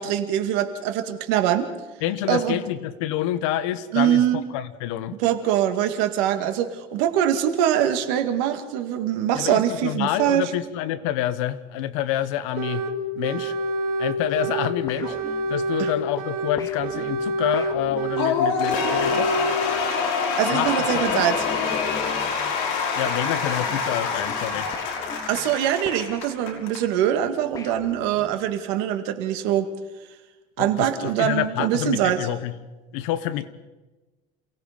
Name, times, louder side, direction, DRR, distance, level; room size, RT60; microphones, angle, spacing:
voice 1, 0.0-1.7 2.3-2.6 3.9-4.4 5.2-10.5 15.8-15.9 20.4-21.4 25.3-29.7 30.6-32.3, right 11 dB, 75° right, 8 dB, 2.2 m, -23 dB
voice 2, 2.0-5.2 9.3-12.9 13.2-13.5 14.0-15.2 15.5-19.3 20.5-20.7 21.1-21.3 23.0-24.7 30.6-32.5 32.9-33.5, left 12 dB, 85° left, 13 dB, 1.3 m, -27 dB
sound 1, 12.6-12.9 13.2-14.7 15.0-16.5 16.8-18.3 18.6-19.6, right 2 dB, 55° right, 2.3 m, -27 dB
sound 2, 14.9-15.9 16.6-19.7 20.7-22.8 23.1-26.8 27.5-28.5, left 4 dB, 20° left, 2.0 m, -39 dB
Cheering / Applause / Crowd, 18.2-26.8, left 5 dB, 70° left, 6.1 m, -26 dB
28.5 x 17.5 x 5.2 m, 1.1 s
cardioid pair, 160°, 16 cm